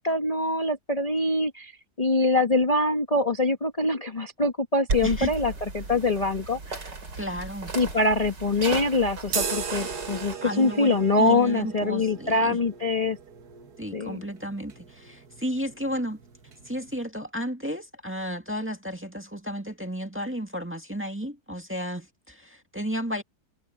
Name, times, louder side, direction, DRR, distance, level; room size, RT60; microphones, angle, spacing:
voice 1, 0.0-1.7 2.0-6.9 7.7-13.2 13.9-14.2, left 2 dB, 25° left, 1.4 m, -24 dB
sound 1, 4.9-10.4, right 3 dB, 90° right, 4.3 m, -35 dB
voice 2, 7.2-7.7 10.4-12.6 13.8-16.2 16.6-23.2, equal, 5° right, 1.8 m, -33 dB
sound 2, 9.3-17.0, right 6 dB, 65° right, 2.1 m, -38 dB
omnidirectional pair, 1.8 m